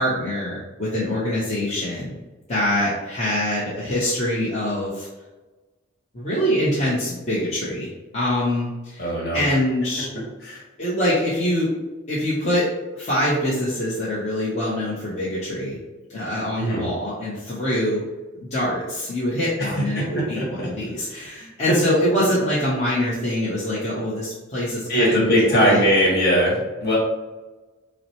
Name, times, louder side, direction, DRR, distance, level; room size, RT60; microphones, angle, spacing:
voice 1, 0.0-2.2 2.5-5.1 6.1-10.1 10.8-11.7 12.1-12.7 12.9-15.8 16.1-18.0 18.4-25.8, left 1 dB, 35° left, -9 dB, 0.9 m, -24 dB
voice 2, 9.0-9.4 10.4-10.6 16.6-16.9 19.6-19.7 19.9-20.7 21.4-21.5 24.9-27.0, equal, 55° left, -4 dB, 1.5 m, -20 dB
5.8 x 2.1 x 2.9 m, 1.2 s
head